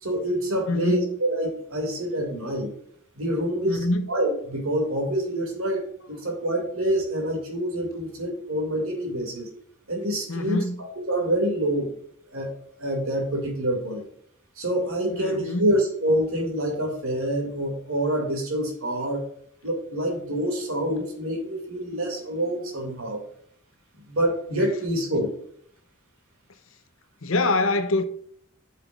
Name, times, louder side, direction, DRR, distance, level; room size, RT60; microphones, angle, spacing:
voice 1, 0.0-2.7 3.2-9.5 9.9-10.6 11.1-11.9 12.3-12.5 12.8-14.0 14.6-19.2 19.6-23.2 24.1-25.3, right 1 dB, 80° right, 2.6 m, -26 dB
voice 2, 0.7-1.0 3.7-4.1 10.3-10.8 15.1-15.7 27.2-28.0, left 2 dB, 70° left, 0.8 m, -24 dB
10.0 x 5.8 x 2.5 m
head